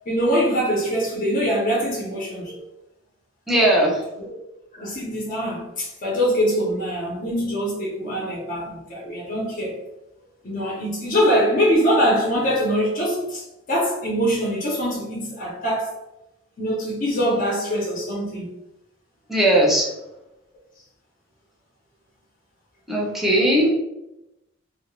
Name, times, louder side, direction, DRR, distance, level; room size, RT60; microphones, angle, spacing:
voice 1, 0.1-2.7 4.2-4.3 4.7-9.8 10.4-13.4 13.7-16.0 16.6-18.5, equal, 45° left, 0.6 m, -23 dB
voice 2, 3.5-4.0 19.3-19.9 22.9-23.7, right 1 dB, ahead, 0.5 m, -18 dB
2.2 x 2.0 x 3.0 m
head